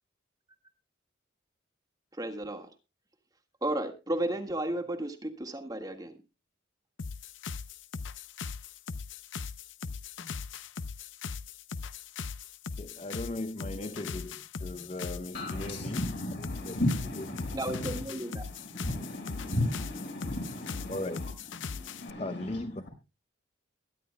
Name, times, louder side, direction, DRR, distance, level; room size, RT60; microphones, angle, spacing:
voice 1, 2.2-2.7 3.6-6.2 17.5-18.4, right 1 dB, 20° right, 1.7 m, -33 dB
sound 1, 7.0-22.1, left 5 dB, 75° left, 0.7 m, -40 dB
voice 2, 12.8-16.0 16.7-16.8 20.9-21.2 22.2-22.8, left 2 dB, 30° left, 0.6 m, -37 dB
voice 3, 15.3-21.3 21.8-22.9, left 1 dB, 60° left, 5.6 m, -35 dB
22.5 x 10.5 x 2.2 m
head